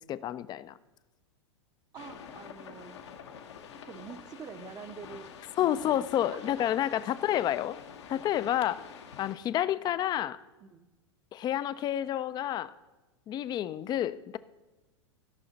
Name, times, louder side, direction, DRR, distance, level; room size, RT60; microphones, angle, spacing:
voice 1, 0.1-0.8 5.6-7.8 8.1-8.9 9.2-10.4 11.3-12.7 13.3-14.4, left 11 dB, 30° left, 17 dB, 0.4 m, -29 dB
sound 1, 1.9-9.3, left 7 dB, 70° left, 1.1 m, -47 dB
voice 2, 1.9-2.9 3.8-7.1 8.1-8.3 10.6-10.9, right 7 dB, 25° right, 12 dB, 0.6 m, -47 dB
16.5 x 5.6 x 4.0 m, 1.1 s
hypercardioid pair, 100°, 15 cm